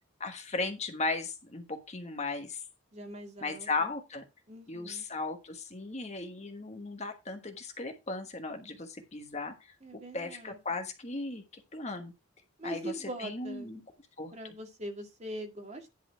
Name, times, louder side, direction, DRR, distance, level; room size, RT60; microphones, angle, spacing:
voice 1, 0.2-2.6 3.4-4.2 4.7-9.5 9.9-12.1 12.6-13.8 14.2-14.3, left 3 dB, 30° left, 1.4 m, -36 dB
voice 2, 2.9-3.9 4.5-5.1 9.8-10.6 12.6-13.7 14.3-15.9, right 1 dB, 30° right, 2.1 m, -42 dB
10.5 x 4.2 x 5.7 m
head